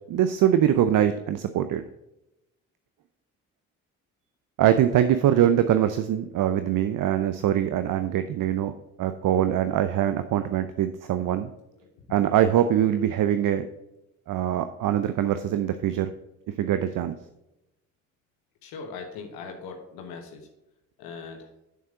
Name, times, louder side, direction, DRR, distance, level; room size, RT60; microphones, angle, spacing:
voice 1, 0.1-1.8 4.6-8.7 9.0-11.5 12.1-13.7 14.3-16.1 16.6-17.1, right 10 dB, 55° right, 10 dB, 0.7 m, -23 dB
voice 2, 18.6-20.5 21.0-21.5, left 5 dB, 70° left, 3 dB, 1.3 m, -40 dB
8.6 x 7.3 x 3.7 m, 0.91 s
hypercardioid pair, 45°, 38 cm